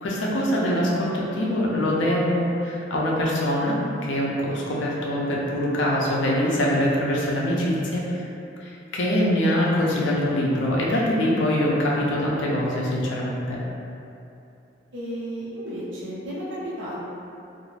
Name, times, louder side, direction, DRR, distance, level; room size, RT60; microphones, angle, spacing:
voice 1, 0.0-3.8 4.0-8.2 8.6-13.6, left 1 dB, 85° left, -4 dB, 0.5 m, -23 dB
voice 2, 14.9-17.0, equal, 75° right, -8 dB, 0.7 m, -33 dB
2.4 x 2.1 x 3.2 m, 2.7 s
head